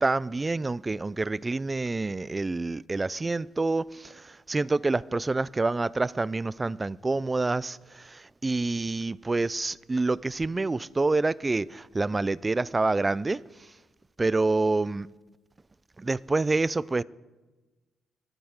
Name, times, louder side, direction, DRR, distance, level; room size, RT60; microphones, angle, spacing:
voice 1, 0.0-13.4 14.2-15.1 16.0-17.0, right 3 dB, 20° right, 0.4 m, -27 dB
25.5 x 13.0 x 3.6 m
cardioid pair, 90°, 0 cm